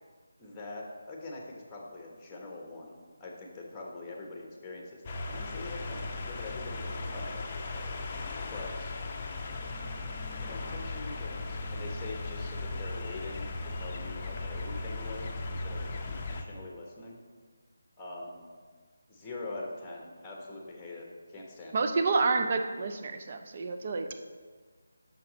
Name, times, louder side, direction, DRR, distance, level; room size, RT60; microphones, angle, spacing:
voice 1, 0.4-7.4 8.4-9.0 10.4-17.2 18.0-18.4 19.1-21.9, left 2 dB, 10° left, -1 dB, 1.1 m, -43 dB
sound 1, 5.1-16.4, left 3 dB, 25° left, 0.6 m, -37 dB
voice 2, 21.7-24.1, right 4 dB, 40° right, 6 dB, 0.6 m, -29 dB
7.4 x 6.0 x 4.2 m, 1.5 s
figure-of-eight pair, 155°, 0 cm